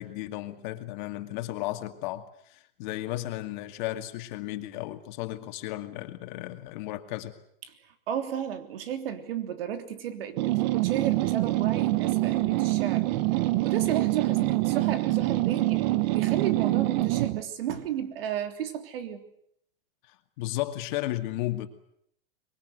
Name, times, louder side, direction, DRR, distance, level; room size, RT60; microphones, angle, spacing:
voice 1, 0.0-7.4 20.1-21.7, left 16 dB, 50° left, 2.4 m, -34 dB
voice 2, 8.1-13.1 13.6-19.3, right 10 dB, 70° right, 3.4 m, -33 dB
sound 1, 10.4-17.4, right 19 dB, 50° right, 1.1 m, -25 dB
24.5 x 23.0 x 8.1 m
supercardioid pair, 145°, 30 cm